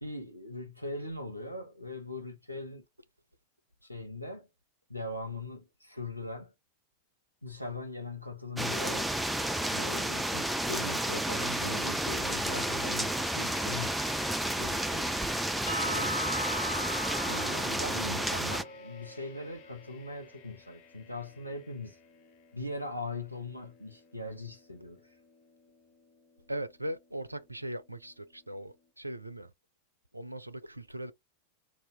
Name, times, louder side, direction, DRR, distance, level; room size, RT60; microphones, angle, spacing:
voice 1, 0.0-2.8 3.8-4.5 4.9-6.5 7.4-9.1 9.7-13.9 14.5-15.1 17.3-22.0 22.5-25.0, left 2 dB, 90° left, 0.8 m, -40 dB
sound 1, 8.6-18.6, right 1 dB, 5° right, 0.4 m, -31 dB
sound 2, 10.5-28.9, left 7 dB, 45° left, 0.7 m, -54 dB
Percussion / Church bell, 15.7-19.5, equal, 60° left, 1.1 m, -37 dB
voice 2, 26.5-29.5 30.1-31.1, right 1 dB, 85° right, 0.4 m, -39 dB
2.7 x 2.4 x 3.4 m
figure-of-eight pair, 90°, 0 cm